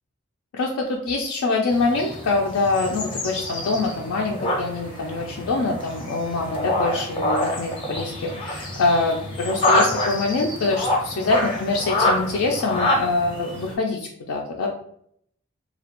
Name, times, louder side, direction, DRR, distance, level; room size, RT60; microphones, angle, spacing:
voice 1, 0.5-14.7, left 3 dB, 80° left, -1 dB, 0.4 m, -24 dB
sound 1, 1.7-13.7, left 1 dB, 25° left, 0.5 m, -26 dB
2.3 x 2.1 x 2.9 m, 0.67 s
head